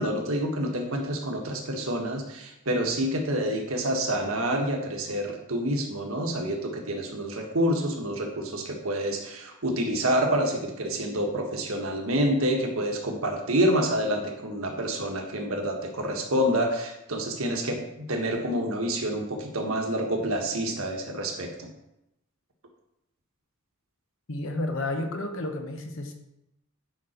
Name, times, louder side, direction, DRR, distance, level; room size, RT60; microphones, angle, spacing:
voice 1, 0.0-21.7, equal, 70° right, 2 dB, 1.5 m, -28 dB
voice 2, 24.3-26.1, left 1 dB, 65° left, 5 dB, 1.1 m, -31 dB
9.4 x 5.4 x 4.4 m, 0.86 s
head